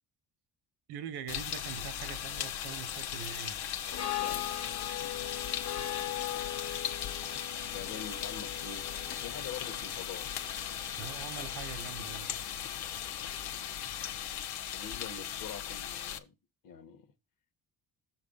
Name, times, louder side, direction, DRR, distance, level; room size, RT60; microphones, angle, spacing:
voice 1, 0.9-3.6 11.0-12.4, right 9 dB, 90° right, 1.0 m, -43 dB
sound 1, 1.3-16.2, left 10 dB, 80° left, 1.0 m, -38 dB
Insect, 1.7-12.5, left 3 dB, 10° left, 0.3 m, -49 dB
voice 2, 3.8-4.5 5.5-6.3 7.6-10.8 14.7-16.3 16.6-17.1, left 7 dB, 60° left, 1.3 m, -46 dB
sound 2, 3.9-14.2, left 13 dB, 40° left, 0.7 m, -42 dB
7.1 x 4.4 x 5.4 m
cardioid pair, 140°, 38 cm